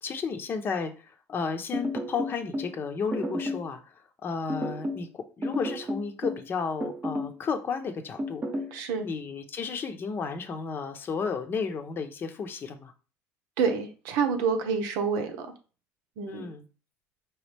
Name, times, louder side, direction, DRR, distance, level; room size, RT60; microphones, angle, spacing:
voice 1, 0.0-3.9 4.2-8.4 9.0-12.9 16.3-16.6, left 5 dB, 35° left, 7 dB, 0.7 m, -33 dB
sound 1, 1.7-2.7 3.1-3.7 4.5-5.1 5.4-6.4 6.8-7.4 8.2-8.7, left 1 dB, 25° right, 0.9 m, -31 dB
voice 2, 8.7-9.1 13.6-15.5 16.2-16.5, right 5 dB, 90° right, 6 dB, 0.9 m, -28 dB
4.8 x 3.0 x 3.3 m, 0.35 s
cardioid pair, 125°, 6 cm